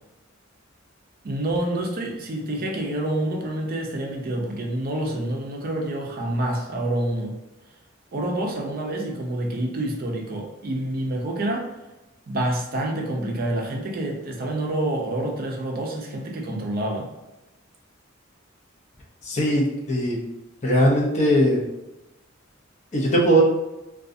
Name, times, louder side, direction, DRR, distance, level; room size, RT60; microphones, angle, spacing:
voice 1, 1.2-7.4 8.1-11.7 12.3-17.1, right 1 dB, 45° right, 1 dB, 0.5 m, -27 dB
voice 2, 19.2-20.2 20.6-21.6 22.9-23.4, right 1 dB, 35° left, -2 dB, 0.6 m, -19 dB
2.5 x 2.3 x 2.5 m, 0.98 s
head